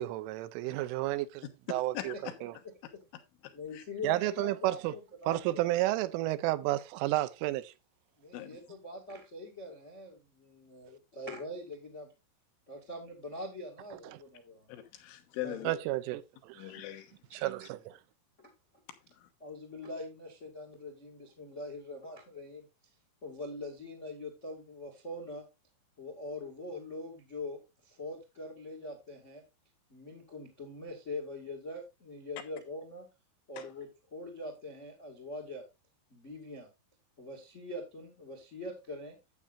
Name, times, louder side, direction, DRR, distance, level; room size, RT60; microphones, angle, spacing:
voice 1, 0.0-1.4 1.7-2.1 2.4-2.5 4.0-4.9 5.3-7.7 14.1-14.2 15.6-16.7 17.3-18.0, right 16 dB, 85° right, 3.2 m, -31 dB
voice 2, 1.9-2.3 3.4-3.8 8.3-8.6 14.7-15.7 16.6-17.5 19.1-19.3 33.6-33.7, left 13 dB, 80° left, 3.5 m, -42 dB
voice 3, 3.5-5.7 8.2-12.1 12.7-14.7 15.4-15.6 18.4-18.5 19.4-22.7 23.2-25.4 26.0-29.4 29.9-33.1 33.5-35.6 36.1-36.7 37.2-39.1, left 1 dB, 45° left, 0.8 m, -43 dB
12.0 x 8.7 x 2.5 m
omnidirectional pair, 5.7 m